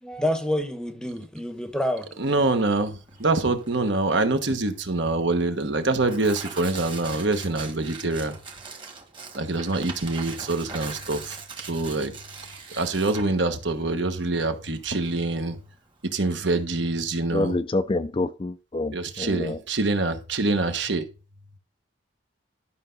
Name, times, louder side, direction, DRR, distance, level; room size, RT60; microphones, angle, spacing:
voice 1, 0.0-2.1, left 1 dB, 5° left, 0.9 m, -28 dB
Tearing, 2.1-16.4, right 4 dB, 25° right, 1.5 m, -42 dB
voice 2, 2.2-8.4 9.3-12.1 12.7-15.6 16.1-17.6 18.9-21.1, right 2 dB, 60° right, 1.2 m, -25 dB
voice 3, 17.3-19.6, left 2 dB, 25° left, 0.4 m, -27 dB
12.0 x 5.7 x 4.0 m
head